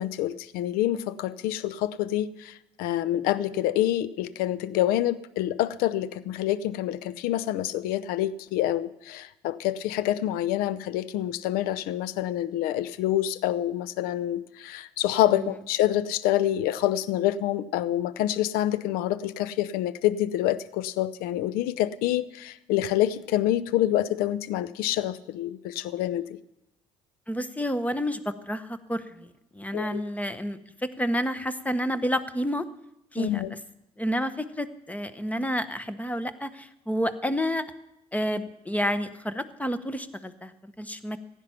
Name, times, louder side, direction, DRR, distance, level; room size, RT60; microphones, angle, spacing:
voice 1, 0.0-26.4 29.7-30.0 33.2-33.5, left 13 dB, 70° left, 18 dB, 0.6 m, -27 dB
voice 2, 27.3-32.7 33.1-33.6 34.0-37.6 38.1-41.2, equal, 10° left, 13 dB, 1.1 m, -30 dB
15.5 x 9.2 x 5.8 m, 0.87 s
hypercardioid pair, 55°, 16 cm